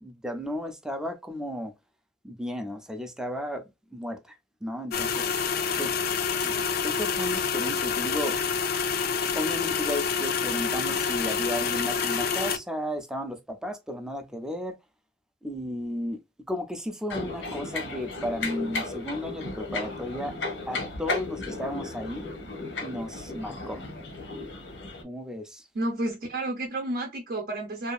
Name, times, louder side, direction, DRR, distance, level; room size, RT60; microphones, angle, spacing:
voice 1, 0.0-1.7 2.2-3.6 3.9-4.2 4.6-5.3 5.8-5.9 6.4-6.5 6.8-8.4 9.4-14.8 15.4-16.2 16.5-20.4 20.7-22.3 22.8-23.8 25.0-25.6, equal, 5° right, 0.4 m, -34 dB
sound 1, 4.9-12.6, left 6 dB, 55° left, 0.4 m, -27 dB
sound 2, 17.1-25.0, left 3 dB, 90° left, 0.8 m, -35 dB
voice 2, 25.7-27.9, right 1 dB, 55° right, 0.6 m, -31 dB
2.7 x 2.3 x 2.3 m
head